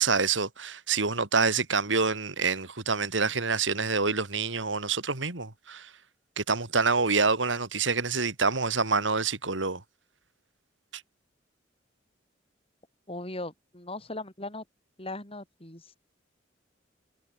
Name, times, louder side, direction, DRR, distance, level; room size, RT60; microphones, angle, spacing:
voice 1, 0.0-5.9 6.4-9.8, right 4 dB, 75° right, 2.8 m, -27 dB
voice 2, 13.1-14.6 15.0-16.0, left 2 dB, 30° left, 7.9 m, -38 dB
head